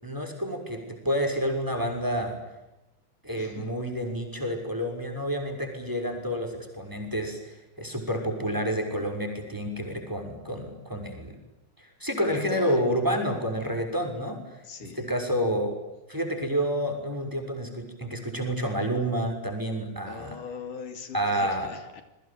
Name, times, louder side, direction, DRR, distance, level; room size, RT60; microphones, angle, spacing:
voice 1, 0.0-2.4 3.2-11.4 11.8-14.4 14.8-15.7 16.1-20.4 21.1-21.7, equal, 5° right, 5 dB, 6.0 m, -29 dB
voice 2, 3.3-3.7 12.2-12.9 14.7-15.0 20.0-22.0, left 5 dB, 85° left, 8 dB, 4.3 m, -40 dB
28.5 x 22.5 x 8.9 m, 1.0 s
omnidirectional pair, 3.5 m